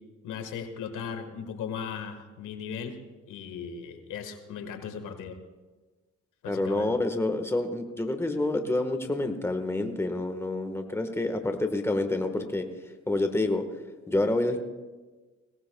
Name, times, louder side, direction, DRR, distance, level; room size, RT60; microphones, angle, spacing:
voice 1, 0.2-3.0 3.3-5.4 6.4-6.9, left 7 dB, 85° left, 7 dB, 1.6 m, -37 dB
voice 2, 6.5-12.7 13.1-13.6 14.1-14.6, left 2 dB, 10° left, 6 dB, 1.4 m, -28 dB
21.5 x 18.0 x 2.3 m, 1.3 s
cardioid pair, 90°, 30 cm